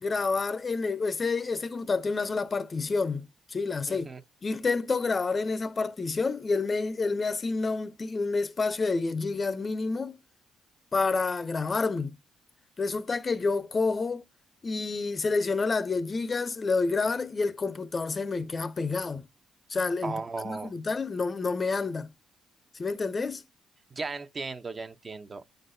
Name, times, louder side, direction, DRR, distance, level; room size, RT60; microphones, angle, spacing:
voice 1, 0.0-4.1 4.4-10.2 10.9-12.2 12.8-14.2 14.6-19.2 19.7-20.1 20.4-22.1 22.7-23.4, left 4 dB, 35° left, 0.6 m, -29 dB
voice 2, 3.9-4.2 20.0-20.7 23.9-25.6, right 4 dB, 35° right, 0.7 m, -36 dB
9.2 x 3.9 x 2.6 m
cardioid pair, 90°, 0 cm